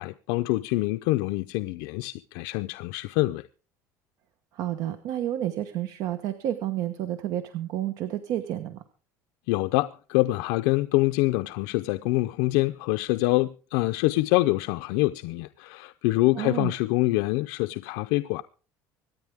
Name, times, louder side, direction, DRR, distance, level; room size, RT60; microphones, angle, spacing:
voice 1, 0.0-3.4 9.5-18.4, left 20 dB, 85° left, 0.5 m, -25 dB
voice 2, 4.5-8.8 16.3-16.7, right 12 dB, 55° right, 1.1 m, -30 dB
25.0 x 9.6 x 3.5 m
cardioid pair, 170°, 7 cm